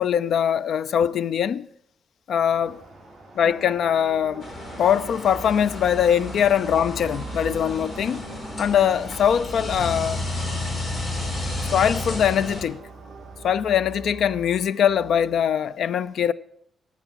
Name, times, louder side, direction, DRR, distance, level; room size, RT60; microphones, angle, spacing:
voice 1, 0.0-1.7 2.3-2.8 3.3-4.5 4.8-8.2 8.6-10.3 11.7-12.8 13.4-16.3, left 8 dB, 65° left, 0.4 m, -22 dB
sound 1, 2.4-13.6, right 2 dB, 20° right, 5.3 m, -49 dB
sound 2, 3.4-15.4, right 3 dB, 40° right, 1.4 m, -41 dB
sound 3, 4.4-12.6, left 2 dB, 40° left, 3.3 m, -32 dB
18.0 x 8.1 x 6.0 m
wide cardioid pair, 180°, 0 cm